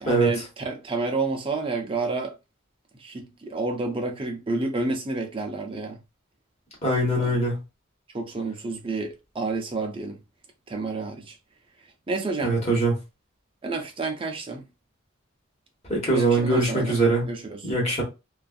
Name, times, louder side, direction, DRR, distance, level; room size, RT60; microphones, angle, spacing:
voice 1, 0.0-2.3 3.0-6.0 7.2-7.4 8.1-10.2 10.7-11.4 12.1-12.6 13.6-14.6 16.1-17.6, right 3 dB, 25° right, 0.5 m, -30 dB
voice 2, 6.8-7.6 12.4-12.9 15.9-17.3 17.6-18.0, right 2 dB, 35° left, 1.3 m, -22 dB
2.5 x 2.4 x 2.3 m
head